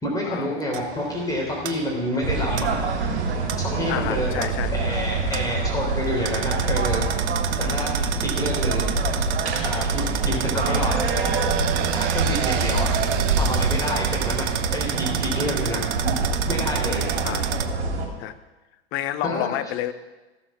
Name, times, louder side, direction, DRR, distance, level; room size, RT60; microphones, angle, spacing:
voice 1, 0.0-2.8 3.6-4.3 4.7-7.3 7.6-7.9 8.2-8.9 9.6-10.9 11.9-13.1 13.4-15.9 16.5-17.2 19.2-19.5, left 1 dB, 10° left, -3 dB, 3.5 m, -28 dB
sound 1, 0.7-17.7, right 10 dB, 50° right, 1.0 m, -31 dB
sound 2, 2.2-18.1, right 4 dB, 70° right, 3.1 m, -25 dB
voice 2, 3.9-4.7 7.6-8.2 17.2-17.6 18.2-18.3 18.9-19.9, left 12 dB, 40° left, 12 dB, 0.8 m, -30 dB
14.5 x 7.2 x 5.9 m, 1.2 s
hypercardioid pair, 100°, 33 cm